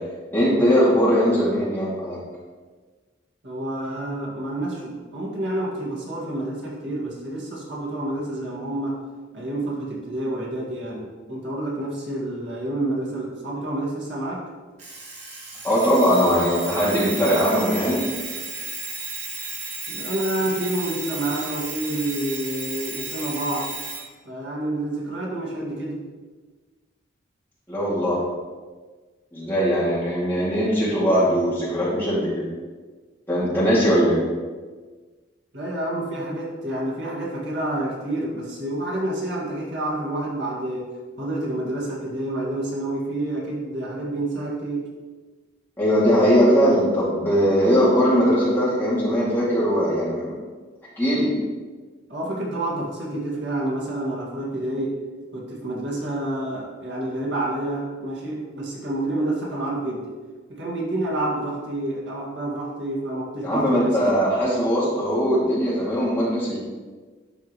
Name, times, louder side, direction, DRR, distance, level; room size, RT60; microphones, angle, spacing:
voice 1, 0.3-2.2 15.6-18.0 27.7-28.2 29.3-32.5 33.3-34.2 45.8-50.4 51.0-51.3 63.4-66.6, equal, 10° left, -9 dB, 2.4 m, -20 dB
voice 2, 3.4-9.0 9.3-14.5 19.9-23.7 24.3-26.0 35.5-40.9 41.2-44.9 52.1-55.0 55.3-60.2 60.5-64.0, right 1 dB, 65° right, -5 dB, 1.9 m, -28 dB
Alarm, 14.8-24.1, right 4 dB, 35° right, 1.3 m, -34 dB
12.0 x 4.8 x 3.1 m, 1.4 s
head